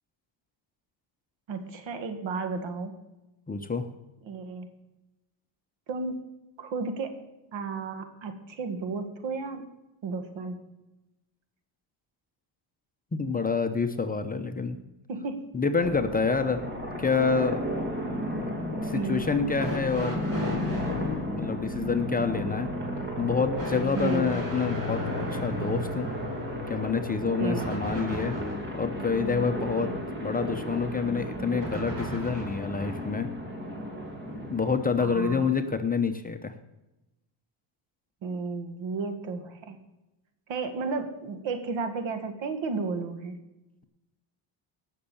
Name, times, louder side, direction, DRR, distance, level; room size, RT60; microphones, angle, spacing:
voice 1, 1.5-3.0 4.2-4.7 5.9-6.2 6.6-7.2 7.5-9.7 10.0-10.6 15.1-15.4 18.9-19.2 24.0-24.3 27.4-27.8 29.8-30.0 35.0-35.5 38.2-39.8 40.5-43.4, right 4 dB, 65° right, 8 dB, 2.0 m, -33 dB
voice 2, 3.5-3.9 13.1-14.8 15.5-16.6 17.0-17.6 18.6-20.3 21.3-22.7 23.2-25.0 25.3-26.1 26.7-28.4 28.7-29.9 30.2-33.3 34.5-36.5, left 5 dB, 15° left, 7 dB, 0.8 m, -27 dB
sound 1, 15.8-35.4, equal, 20° right, 2.7 m, -34 dB
sound 2, 19.6-21.0 23.5-28.6 31.6-32.7 33.9-34.0 35.0-35.1, equal, 40° right, 4.8 m, -37 dB
17.5 x 6.6 x 7.1 m, 0.99 s
cardioid pair, 115°, 49 cm